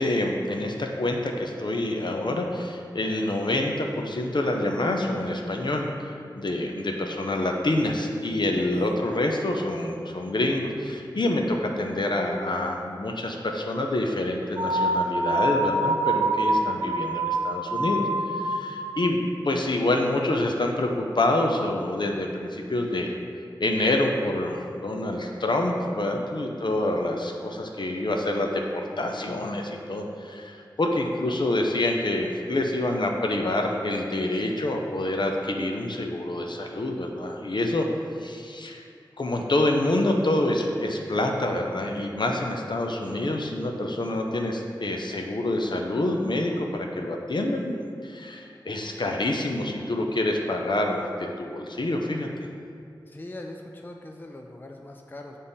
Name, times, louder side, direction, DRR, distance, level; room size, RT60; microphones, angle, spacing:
voice 1, 0.0-18.1 18.3-19.2 19.5-23.1 23.6-37.9 38.2-38.8 39.2-51.0 51.4-52.3, left 1 dB, 60° left, 2 dB, 0.6 m, -27 dB
sound 1, 14.6-19.2, right 1 dB, 45° right, 0.5 m, -26 dB
voice 2, 53.1-55.4, left 1 dB, 25° left, 2 dB, 0.4 m, -40 dB
7.0 x 3.6 x 4.1 m, 2.3 s
wide cardioid pair, 70°, 9 cm